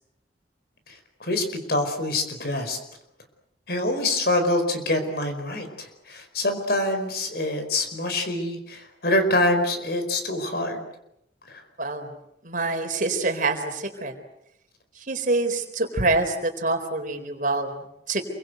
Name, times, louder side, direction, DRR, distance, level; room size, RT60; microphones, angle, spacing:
voice 1, 0.9-2.8 3.7-10.8 11.5-11.6, left 1 dB, 60° left, 7 dB, 4.8 m, -25 dB
voice 2, 11.8-12.1 12.4-14.2 14.9-18.2, right 2 dB, 50° right, 6 dB, 4.1 m, -26 dB
27.5 x 24.0 x 8.0 m, 0.82 s
head